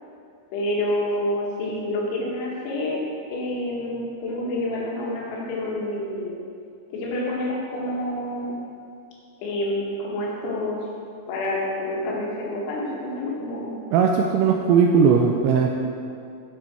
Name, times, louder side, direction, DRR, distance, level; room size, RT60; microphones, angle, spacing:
voice 1, 0.5-3.0 3.3-6.4 6.9-8.6 9.4-10.8 11.3-13.8, left 1 dB, 85° left, -4 dB, 4.7 m, -28 dB
voice 2, 13.9-15.7, right 6 dB, 90° right, 1 dB, 2.6 m, -18 dB
15.5 x 7.4 x 4.6 m, 2.4 s
omnidirectional pair, 5.8 m